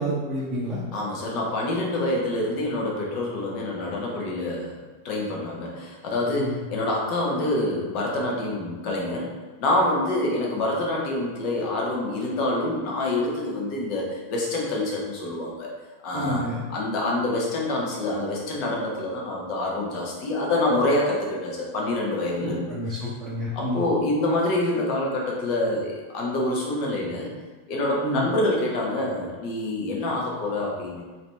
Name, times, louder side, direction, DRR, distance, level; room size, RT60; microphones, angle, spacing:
voice 1, 0.0-0.8 6.4-6.7 16.1-16.6 22.4-23.9 28.0-28.3, equal, 15° right, -8 dB, 0.9 m, -29 dB
voice 2, 0.9-4.8 5.0-9.3 9.6-15.7 16.0-16.4 16.7-22.7 23.5-27.3 27.7-31.0, left 1 dB, 40° left, -2 dB, 1.0 m, -26 dB
4.0 x 2.9 x 3.3 m, 1.3 s
figure-of-eight pair, 90°, 0 cm